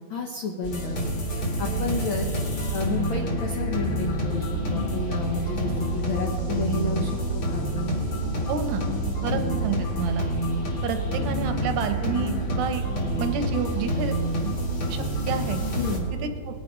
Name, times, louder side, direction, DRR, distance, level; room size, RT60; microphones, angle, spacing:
voice 1, 0.1-1.0 1.6-2.3 2.7-8.0 9.2-9.4 15.8-16.1, left 3 dB, 85° left, 2 dB, 1.0 m, -31 dB
sound 1, 0.6-16.0, right 1 dB, 45° left, 2.7 m, -27 dB
voice 2, 8.5-8.9 9.2-10.3 10.8-12.9 13.2-14.5 14.9-15.6 16.2-16.5, right 6 dB, 75° right, 7 dB, 2.0 m, -29 dB
20.0 x 7.2 x 5.1 m, 2.1 s
omnidirectional pair, 3.6 m